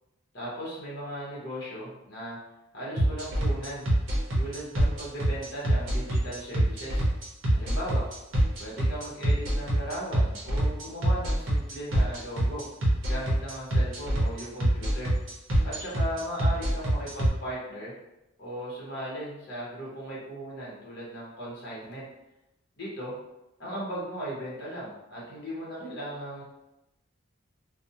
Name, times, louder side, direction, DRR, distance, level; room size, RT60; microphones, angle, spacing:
voice 1, 0.3-2.4 2.7-3.8 4.3-7.0 7.5-8.0 8.6-12.6 13.0-15.1 15.6-17.9 18.4-22.1 22.8-23.1 23.6-26.4, right 1 dB, 50° left, -6 dB, 0.9 m, -37 dB
sound 1, 3.0-17.3, right 1 dB, 65° right, 0.7 m, -24 dB
2.5 x 2.0 x 2.7 m, 0.92 s
head